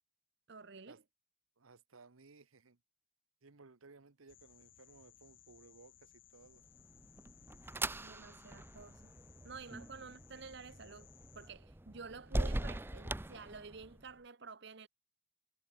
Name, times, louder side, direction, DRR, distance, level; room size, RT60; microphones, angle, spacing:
voice 1, 0.5-1.0 8.0-9.1 9.4-11.1 11.3-14.9, right 4 dB, 55° right, 1.0 m, -51 dB
voice 2, 1.6-2.8 3.4-6.6, right 3 dB, 85° right, 1.1 m, -60 dB
sound 1, 4.3-11.5, left 10 dB, 65° left, 1.9 m, -63 dB
sound 2, 6.7-14.1, right 1 dB, 10° right, 0.6 m, -42 dB
head